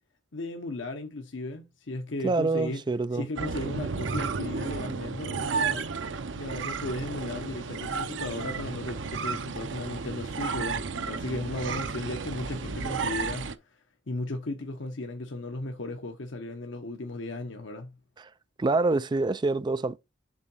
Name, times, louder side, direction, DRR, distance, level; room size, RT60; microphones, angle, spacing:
voice 1, 0.3-2.8 3.1-5.9 6.4-13.5 14.1-18.0, left 2 dB, 80° left, 0.9 m, -36 dB
voice 2, 2.2-3.3 18.2-18.3 18.6-20.0, right 3 dB, 25° right, 0.4 m, -26 dB
sound 1, 3.3-13.5, right 5 dB, 80° right, 0.7 m, -33 dB
7.4 x 3.8 x 5.5 m
head